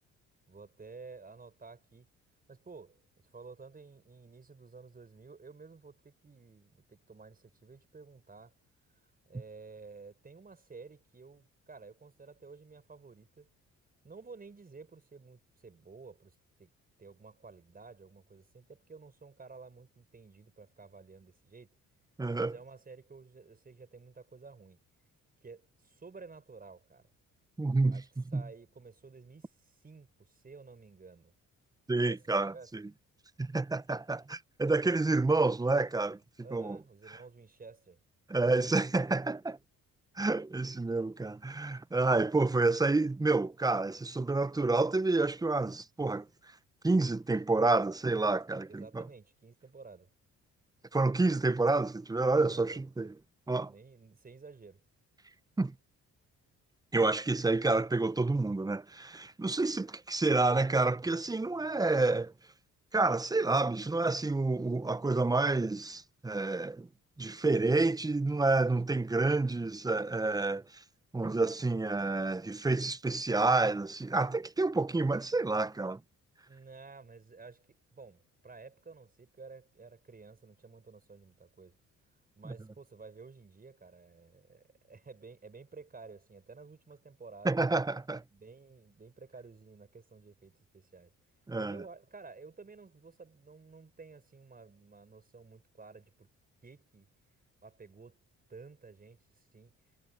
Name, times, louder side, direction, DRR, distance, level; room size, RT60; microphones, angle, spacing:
voice 1, 0.5-2.1 2.5-3.0 3.3-8.5 9.3-13.5 14.0-16.7 17.0-21.8 22.3-24.8 25.4-27.1 27.9-31.3 32.0-32.7 36.4-38.0 48.7-50.1 52.5-52.9 53.7-54.8 76.5-81.8 82.4-87.6 88.3-91.1 91.6-96.3 96.6-97.1 97.6-98.2 98.5-99.8, right 4 dB, 30° right, 5.5 m, -52 dB
voice 2, 22.2-22.5 27.6-28.0 28.3-28.4 31.9-32.8 33.4-36.2 36.5-36.8 38.3-39.6 40.2-46.3 46.8-49.0 50.9-53.1 53.5-53.7 55.6-55.7 56.9-62.3 62.9-66.9 67.2-70.8 71.1-76.0 82.4-82.5 87.4-88.2 91.5-91.8, right 3 dB, 10° right, 0.7 m, -29 dB
cardioid pair, 90°, 30 cm